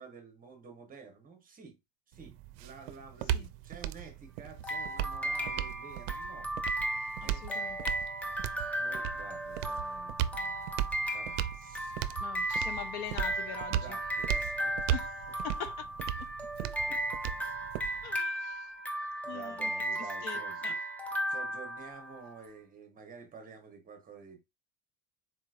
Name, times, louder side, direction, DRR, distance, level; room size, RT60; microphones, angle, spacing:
voice 1, 0.0-1.8 2.1-6.8 7.2-7.4 8.8-10.7 11.1-11.9 13.7-14.8 16.6-17.6 19.2-20.8 21.3-24.4, right 5 dB, 25° right, 0.9 m, -50 dB
sound 1, 2.1-18.2, right 12 dB, 80° right, 0.5 m, -37 dB
sound 2, 4.6-22.3, right 1 dB, 5° left, 0.4 m, -35 dB
voice 2, 7.2-8.0 12.2-14.0 14.9-15.9 16.2-16.3 18.0-18.7 19.3-19.7 20.0-20.8, left 9 dB, 55° left, 0.6 m, -43 dB
4.1 x 3.0 x 2.4 m
cardioid pair, 145°, 36 cm